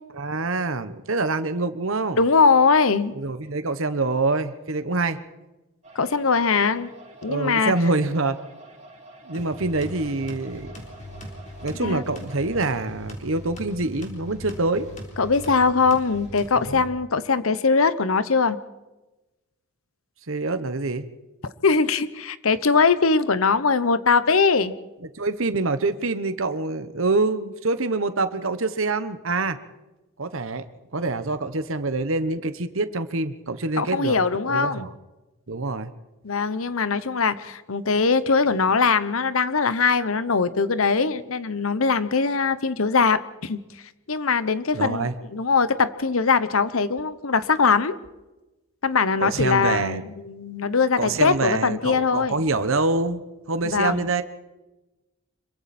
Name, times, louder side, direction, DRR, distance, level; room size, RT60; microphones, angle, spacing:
voice 1, 0.1-2.2 3.2-5.2 7.3-8.4 9.3-10.7 11.6-14.9 16.6-16.8 20.3-21.1 25.1-29.6 30.2-30.6 30.9-34.2 34.4-34.9 35.5-35.9 44.7-45.1 49.2-50.0 51.0-53.2 53.5-54.2, right 3 dB, 70° right, 11 dB, 1.1 m, -25 dB
voice 2, 2.1-3.1 5.9-6.9 7.2-7.7 11.7-12.0 15.2-18.6 21.6-24.7 33.8-34.9 36.2-43.6 44.1-48.0 48.8-52.4 53.6-54.1, left 4 dB, 75° left, 14 dB, 1.0 m, -21 dB
sound 1, 5.8-12.6, right 2 dB, 30° right, 3.5 m, -47 dB
sound 2, 9.3-16.9, equal, 35° left, 3.6 m, -40 dB
26.0 x 23.0 x 4.4 m, 1.1 s
head